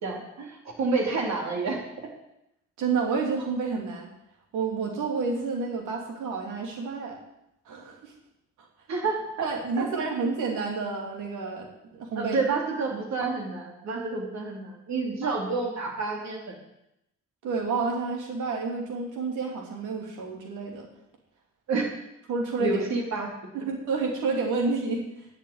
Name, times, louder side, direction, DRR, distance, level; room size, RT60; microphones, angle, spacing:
voice 1, 0.0-1.8 8.9-9.5 9.8-9.9 12.2-16.5 21.7-21.8 22.6-23.3, right 3 dB, 65° right, 1 dB, 3.7 m, -29 dB
voice 2, 2.8-4.1 4.5-7.2 7.7-8.1 9.4-11.7 12.0-12.4 15.2-15.3 17.4-20.9 22.3-22.8 23.5-25.3, right 4 dB, 90° right, 0 dB, 3.0 m, -29 dB
11.0 x 6.6 x 9.0 m, 0.83 s
cardioid pair, 90°, 30 cm